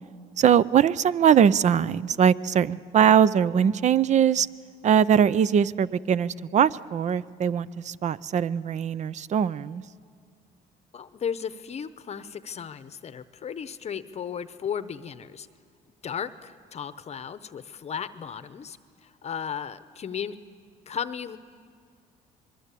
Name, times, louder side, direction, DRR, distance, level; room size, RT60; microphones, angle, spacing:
voice 1, 0.4-4.5 4.8-9.8, right 8 dB, 45° right, 19 dB, 0.6 m, -21 dB
voice 2, 10.9-15.5 16.0-20.4 20.9-21.4, left 7 dB, 40° left, 12 dB, 0.8 m, -35 dB
25.5 x 21.5 x 8.4 m, 2.2 s
cardioid pair, 110°, 17 cm